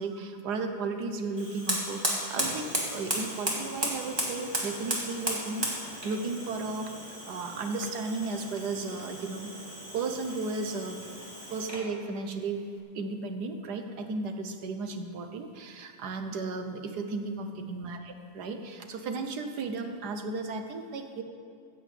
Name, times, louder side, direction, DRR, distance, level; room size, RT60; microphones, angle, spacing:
voice 1, 0.0-5.7 6.0-9.5 9.9-11.0 11.5-12.6 12.9-21.2, right 3 dB, 70° right, 6 dB, 1.5 m, -34 dB
Fire, 1.3-11.9, equal, 15° right, 2.0 m, -35 dB
14.5 x 6.3 x 8.1 m, 2.4 s
omnidirectional pair, 1.8 m